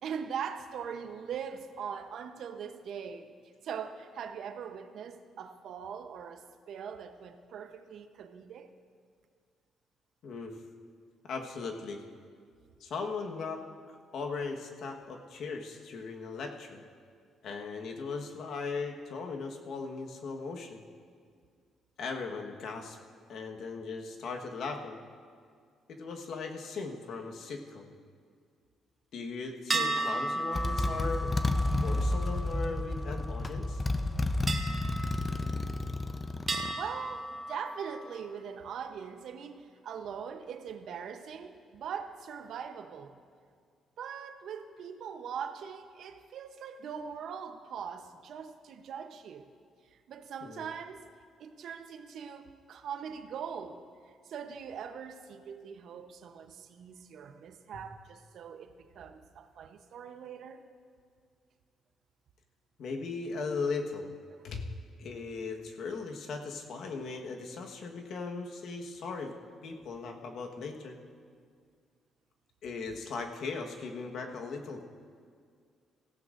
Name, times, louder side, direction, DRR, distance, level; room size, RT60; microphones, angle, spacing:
voice 1, 0.0-3.3 3.6-8.7 36.7-43.2 44.0-49.5 49.9-51.1 51.4-60.6 64.3-64.4, right 7 dB, 70° right, 8 dB, 0.8 m, -41 dB
voice 2, 11.2-12.0 12.8-16.9 17.4-20.8 22.0-23.0 23.3-25.0 25.9-27.9 29.1-31.3 31.8-33.8 50.4-50.7 62.8-64.1 64.4-64.6 65.0-69.3 69.6-71.0 72.6-74.9, left 4 dB, 70° left, 3 dB, 1.3 m, -38 dB
sound 1, 29.7-33.4 34.5-36.0 36.5-38.2, right 2 dB, 30° right, 1.3 m, -36 dB
Motorcycle, 30.0-30.1 30.5-36.7, left 2 dB, 25° left, 0.7 m, -31 dB
17.5 x 15.0 x 2.6 m, 2.1 s
cardioid pair, 90°, 0 cm